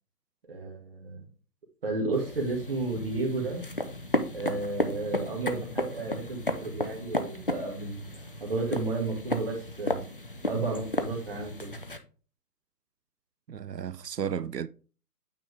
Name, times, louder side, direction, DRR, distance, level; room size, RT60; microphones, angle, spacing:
voice 1, 0.5-1.2 1.8-3.6 4.3-10.0 10.4-11.7, right 3 dB, 35° right, 2.1 m, -32 dB
sound 1, 2.1-12.0, left 1 dB, 35° left, 0.5 m, -34 dB
voice 2, 13.5-14.7, right 8 dB, 85° right, 0.6 m, -33 dB
9.0 x 4.4 x 3.4 m
figure-of-eight pair, 145°, 47 cm